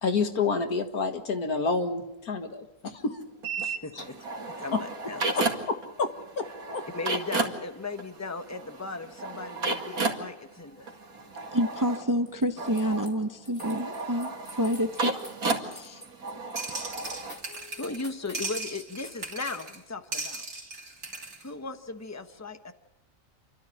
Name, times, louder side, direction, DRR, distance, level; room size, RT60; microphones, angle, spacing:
voice 1, 0.0-3.2 4.0-4.1 4.7-4.8 5.3-6.1 6.4-6.5 6.7-6.8, left 4 dB, 90° left, 2.3 m, -28 dB
sound 1, 3.4-5.9 6.1-17.4, right 3 dB, 75° right, 2.8 m, -33 dB
voice 2, 3.6-5.2 6.9-10.9 17.5-20.5 21.4-22.7, left 3 dB, 10° left, 1.1 m, -37 dB
voice 3, 11.5-14.3 14.6-15.1 15.7-16.0, equal, 20° right, 0.5 m, -28 dB
sound 2, 12.3-13.1 13.4-19.1, left 1 dB, 35° left, 3.5 m, -47 dB
sound 3, 16.6-18.1 18.3-19.8 20.1-21.4, right 2 dB, 60° right, 3.3 m, -37 dB
29.0 x 13.0 x 9.9 m
omnidirectional pair, 1.5 m